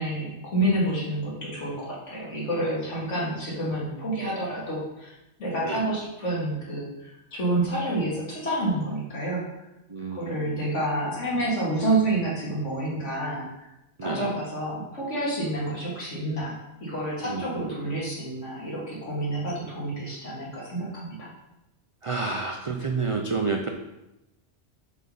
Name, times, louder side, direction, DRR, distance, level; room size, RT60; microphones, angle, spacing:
voice 1, 0.0-5.1 5.4-9.4 10.1-13.7 14.0-21.3, right 1 dB, 75° left, -5 dB, 2.3 m, -29 dB
voice 2, 9.9-10.6 14.0-14.3 17.2-17.9 22.0-23.7, right 4 dB, 60° right, 3 dB, 0.3 m, -30 dB
6.0 x 3.7 x 5.3 m, 0.93 s
omnidirectional pair, 1.3 m